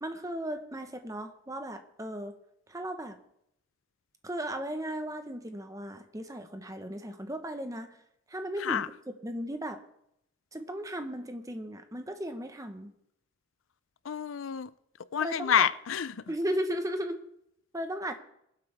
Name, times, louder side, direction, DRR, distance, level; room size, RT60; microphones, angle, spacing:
voice 1, 0.0-2.3 2.7-3.2 4.2-8.0 8.3-9.8 10.5-12.9 15.2-15.7 16.3-17.2 17.7-18.1, equal, 15° right, 1.2 m, -36 dB
voice 2, 14.0-14.7 15.1-16.1, left 8 dB, 75° left, 0.5 m, -28 dB
23.0 x 8.1 x 3.6 m
head